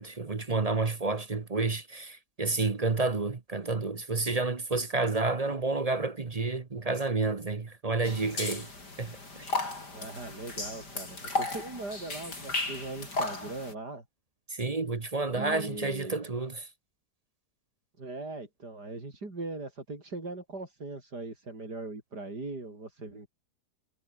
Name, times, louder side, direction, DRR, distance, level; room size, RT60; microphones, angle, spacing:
voice 1, 0.0-8.7 9.0-9.2 14.5-16.7, right 3 dB, 30° right, 0.9 m, -30 dB
sound 1, 8.0-13.7, left 2 dB, 80° left, 6.4 m, -35 dB
voice 2, 9.9-14.0 15.3-16.2 18.0-23.3, right 2 dB, 75° right, 5.9 m, -40 dB
omnidirectional pair, 1.8 m